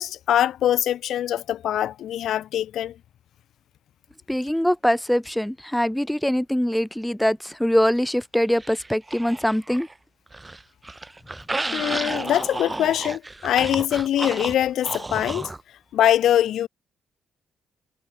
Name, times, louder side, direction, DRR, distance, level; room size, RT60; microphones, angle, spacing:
voice 1, 0.0-2.9 11.7-15.5 15.9-16.7, left 11 dB, 75° left, 1.2 m, -23 dB
voice 2, 4.3-9.9, equal, 5° left, 0.9 m, -23 dB
sound 1, 8.6-9.9 10.3-15.6, right 2 dB, 15° right, 7.3 m, -32 dB
cardioid pair, 90°, 0 cm